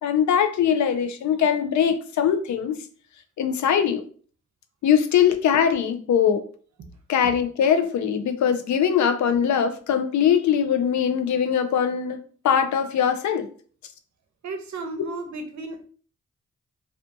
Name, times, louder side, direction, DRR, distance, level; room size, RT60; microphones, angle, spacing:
voice 1, 0.0-2.8 3.4-4.0 4.8-6.4 7.1-13.5, left 8 dB, 75° left, 8 dB, 0.4 m, -21 dB
voice 2, 14.4-15.8, right 3 dB, 75° right, 5 dB, 0.6 m, -34 dB
2.4 x 2.4 x 2.6 m, 0.43 s
cardioid pair, 45°, 29 cm